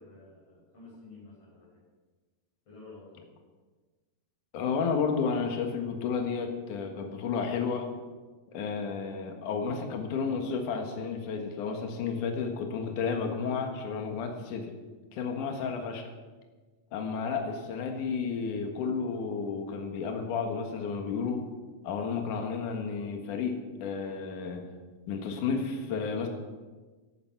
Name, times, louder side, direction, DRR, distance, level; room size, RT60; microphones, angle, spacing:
voice 1, 0.0-1.8 2.7-3.2, left 3 dB, 45° left, -9 dB, 7.1 m, -51 dB
voice 2, 4.5-7.9 8.5-14.7 15.1-16.1 16.9-21.4 21.8-24.7 25.1-26.3, left 5 dB, 65° left, 4 dB, 3.0 m, -32 dB
16.0 x 12.0 x 6.0 m, 1.3 s
omnidirectional pair, 4.0 m